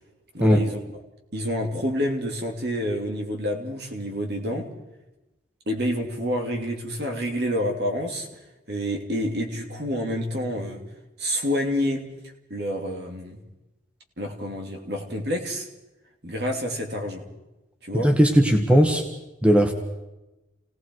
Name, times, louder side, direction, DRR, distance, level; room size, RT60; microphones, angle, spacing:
voice 1, 0.3-0.8 1.3-4.7 5.7-8.3 8.7-10.8 11.2-12.1 12.5-13.4 14.2-15.7 16.2-17.3 17.8-18.1 18.4-18.5, equal, 60° right, 2 dB, 3.0 m, -28 dB
voice 2, 17.9-19.0 19.4-19.7, equal, 5° right, 4 dB, 1.4 m, -18 dB
30.0 x 18.5 x 4.7 m, 1.0 s
head